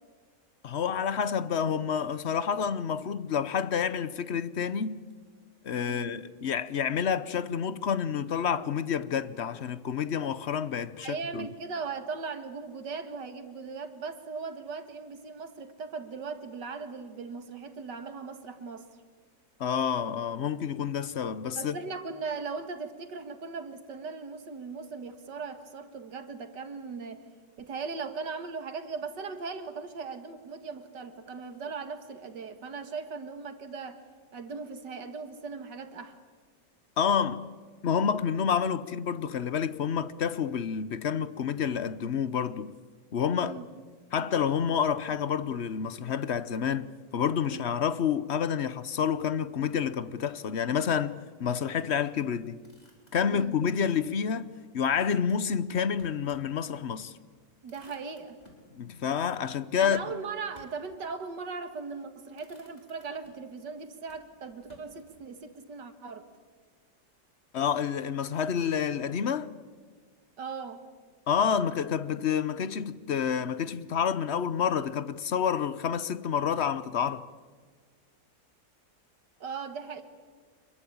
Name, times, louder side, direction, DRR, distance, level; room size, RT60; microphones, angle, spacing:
voice 1, 0.6-5.0 5.6-11.5 19.6-21.8 37.0-37.5 37.8-42.7 43.1-43.5 44.1-51.1 51.4-52.6 53.1-54.5 54.7-57.1 58.7-60.0 67.5-69.5 71.3-77.2, left 7 dB, 50° left, 0.9 m, -29 dB
voice 2, 5.8-6.2 11.0-18.9 21.6-27.3 27.6-34.0 34.3-36.2 43.3-43.6 47.5-47.7 53.3-53.6 57.6-58.4 59.8-66.3 70.4-70.8 79.4-80.0, right 5 dB, 75° right, 2.4 m, -38 dB
Motor vehicle (road), 52.6-53.7 55.2-56.5 56.9-57.0 57.3-58.7 59.9-60.9 61.7-62.0 62.3-63.6 64.0-65.3, left 1 dB, 20° left, 4.8 m, -59 dB
26.0 x 22.0 x 8.7 m
omnidirectional pair, 1.9 m